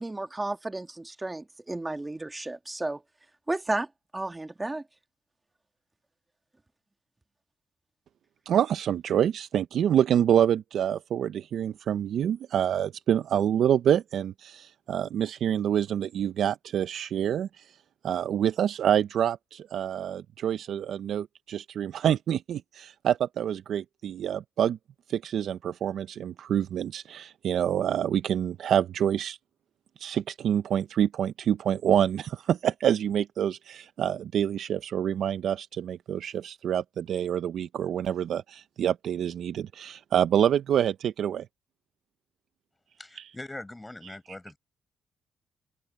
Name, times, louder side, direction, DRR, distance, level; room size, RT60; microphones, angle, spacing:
voice 1, 0.0-3.0 3.5-3.9 4.1-4.8, right 2 dB, 15° right, 1.8 m, -32 dB
voice 2, 8.5-17.8 18.0-24.8 25.1-29.4 30.0-41.5 43.2-43.3 44.0-44.1, right 9 dB, 65° right, 0.5 m, -27 dB
voice 3, 43.0-44.6, left 2 dB, 15° left, 7.3 m, -42 dB
open air
cardioid pair, 90°, 0 cm